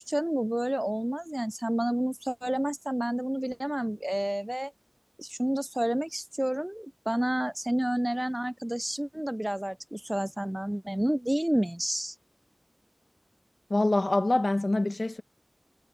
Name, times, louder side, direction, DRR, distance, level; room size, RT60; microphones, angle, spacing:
voice 1, 0.0-4.7 5.2-12.1, right 1 dB, 15° right, 0.3 m, -30 dB
voice 2, 13.7-15.2, left 2 dB, 60° left, 1.6 m, -25 dB
wide cardioid pair, 40°, 0 cm